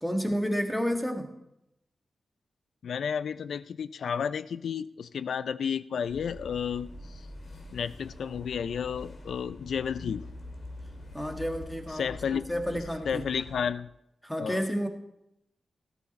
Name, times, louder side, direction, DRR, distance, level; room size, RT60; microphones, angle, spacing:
voice 1, 0.0-1.3 11.1-12.2 12.5-13.2 14.2-14.9, equal, 5° left, 4 dB, 1.8 m, -30 dB
voice 2, 2.8-6.9 7.7-10.2 12.0-12.5 13.1-13.9 14.4-14.6, left 7 dB, 80° left, 16 dB, 0.4 m, -32 dB
sound 1, 6.1-13.7, left 2 dB, 60° left, 2.8 m, -45 dB
13.5 x 13.5 x 4.3 m, 0.84 s
cardioid pair, 85°, 0 cm